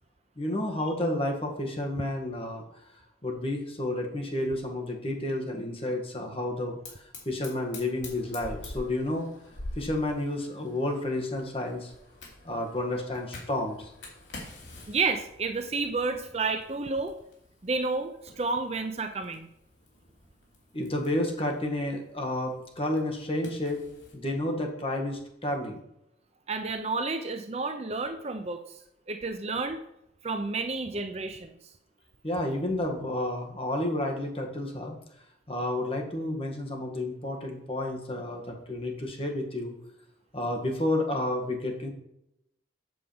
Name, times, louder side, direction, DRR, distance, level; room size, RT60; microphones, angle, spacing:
voice 1, 0.4-2.6 3.2-6.8 7.3-9.3 9.8-11.9 12.4-13.9 20.7-23.8 24.1-25.8 32.2-35.0 35.5-39.8 40.3-41.9, left 1 dB, 30° left, 1 dB, 1.7 m, -31 dB
Fire, 6.8-24.2, left 1 dB, 80° left, 3.0 m, -47 dB
voice 2, 14.9-17.1 17.6-19.5 26.5-28.6 29.1-29.8 30.2-31.6, right 3 dB, 35° right, 7 dB, 0.6 m, -30 dB
7.9 x 4.9 x 7.1 m, 0.81 s
head